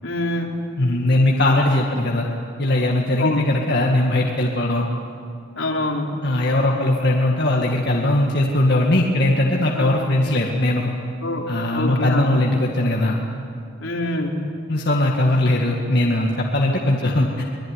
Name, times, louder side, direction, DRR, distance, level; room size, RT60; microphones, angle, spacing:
voice 1, 0.0-0.6 3.2-3.5 5.6-6.1 9.7-9.9 11.2-12.4 13.8-14.4, left 1 dB, 75° left, 0 dB, 3.6 m, -25 dB
voice 2, 0.8-2.3 2.6-4.8 6.2-10.9 11.5-13.2 14.7-17.4, left 1 dB, 55° left, -1 dB, 2.0 m, -19 dB
24.0 x 21.0 x 9.8 m, 2.5 s
head